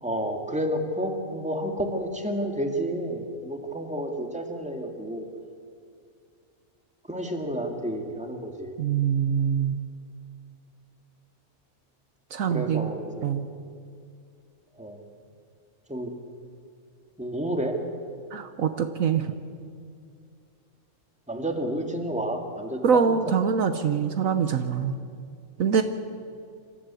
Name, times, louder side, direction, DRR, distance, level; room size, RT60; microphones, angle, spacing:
voice 1, 0.0-5.2 7.1-8.7 12.5-13.3 14.8-15.0 15.9-16.1 17.2-17.8 19.3-19.4 21.3-23.2 24.8-24.9, right 1 dB, 5° right, 3 dB, 2.0 m, -30 dB
voice 2, 8.8-9.8 12.3-12.9 13.2-13.5 18.3-19.3 22.8-25.0 25.6-25.8, right 7 dB, 65° right, 9 dB, 1.3 m, -24 dB
26.5 x 13.5 x 8.3 m, 2.3 s
omnidirectional pair, 1.5 m